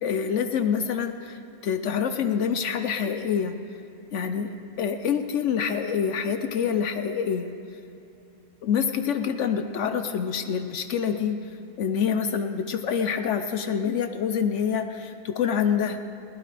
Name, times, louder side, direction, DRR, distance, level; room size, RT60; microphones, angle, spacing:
voice 1, 0.0-3.5 4.1-4.5 4.8-7.5 8.6-11.4 11.8-16.0, left 7 dB, 75° left, 8 dB, 1.0 m, -26 dB
20.5 x 17.0 x 3.4 m, 2.8 s
omnidirectional pair, 1.3 m